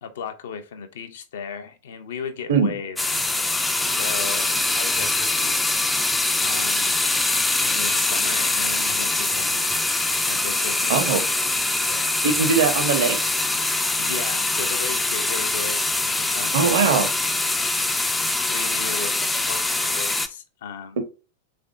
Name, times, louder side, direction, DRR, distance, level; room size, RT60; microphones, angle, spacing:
voice 1, 0.0-3.3 3.8-5.6 6.4-6.9 7.6-9.7 10.3-11.0 11.9-12.1 14.0-16.8 18.4-21.0, left 6 dB, 60° left, 0.5 m, -36 dB
sound 1, 3.0-20.3, left 2 dB, 10° left, 0.3 m, -23 dB
voice 2, 10.9-11.2 12.2-13.2 16.5-17.1 21.0-21.1, right 5 dB, 60° right, 0.7 m, -20 dB
3.5 x 3.3 x 2.4 m
figure-of-eight pair, 90°, 0 cm